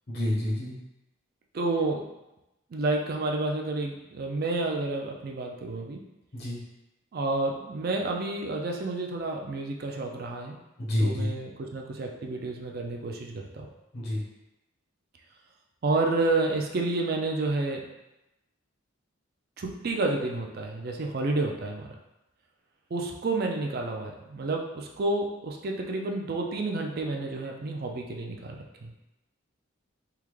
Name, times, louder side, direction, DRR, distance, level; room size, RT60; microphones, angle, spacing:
voice 1, 0.1-0.8 6.3-6.6 10.8-11.3 13.9-14.2, left 1 dB, 50° left, -5 dB, 0.7 m, -28 dB
voice 2, 1.5-2.1 2.7-6.0 7.1-10.6 11.0-13.7 15.8-17.9 19.6-21.9 22.9-28.9, right 2 dB, 45° right, 1 dB, 0.4 m, -30 dB
3.5 x 2.1 x 3.1 m, 0.95 s
head